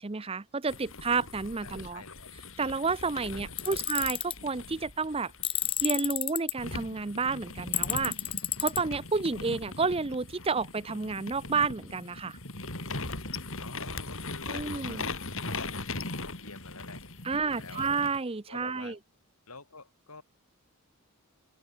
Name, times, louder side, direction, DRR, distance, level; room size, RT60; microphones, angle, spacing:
voice 1, 0.0-2.0 2.6-5.3 5.8-8.2 8.6-12.4 14.5-15.1 17.2-19.0, right 4 dB, 25° right, 0.6 m, -30 dB
sound 1, 0.7-6.1 6.6-18.2, left 3 dB, 60° left, 6.3 m, -40 dB
voice 2, 1.6-2.3 3.3-3.8 13.6-15.9 16.2-17.9 18.5-19.0 19.5-20.2, left 3 dB, 90° left, 7.1 m, -49 dB
Tools, 3.6-4.3 5.4-6.5 7.7-8.8, left 12 dB, 25° left, 0.4 m, -30 dB
head